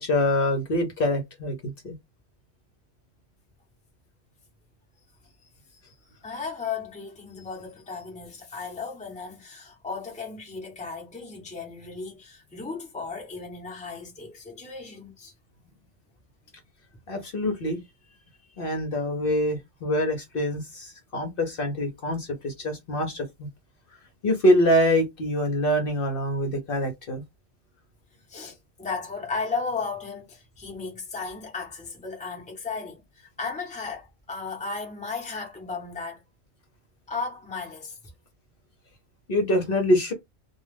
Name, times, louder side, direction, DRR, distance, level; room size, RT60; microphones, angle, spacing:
voice 1, 0.0-1.9 17.1-17.8 18.6-23.3 24.2-27.2 39.3-40.1, left 1 dB, 55° left, 0.9 m, -25 dB
voice 2, 6.2-15.3 28.3-36.2 37.1-38.0, left 4 dB, 5° left, 0.8 m, -35 dB
2.3 x 2.3 x 3.2 m
omnidirectional pair, 1.2 m